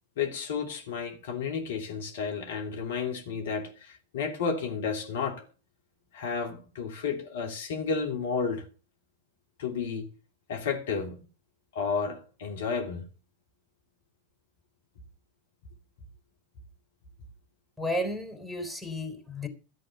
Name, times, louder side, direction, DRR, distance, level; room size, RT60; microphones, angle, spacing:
voice 1, 0.2-5.4 6.1-8.7 9.6-10.1 10.5-11.2 11.7-13.0, left 5 dB, 60° left, 3.1 m, -32 dB
voice 2, 17.8-19.5, left 1 dB, ahead, 3.9 m, -33 dB
14.0 x 7.7 x 6.8 m
figure-of-eight pair, 90°, 0 cm